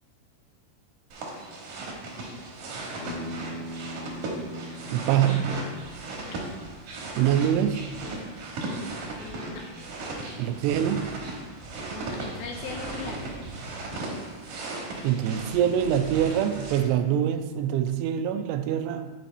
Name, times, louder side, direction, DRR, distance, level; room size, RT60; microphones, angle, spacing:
sound 1, 1.1-16.8, right 2 dB, 65° right, 2.1 m, -36 dB
Bass guitar, 3.0-7.3, equal, 50° left, 2.8 m, -41 dB
voice 1, 4.9-5.5 7.2-7.8 10.4-11.1 15.0-19.1, right 10 dB, 85° right, 9 dB, 2.6 m, -24 dB
voice 2, 9.2-9.6 11.9-13.4, left 5 dB, 80° left, 1 dB, 2.2 m, -39 dB
9.2 x 3.9 x 4.1 m, 1.3 s
omnidirectional pair, 4.7 m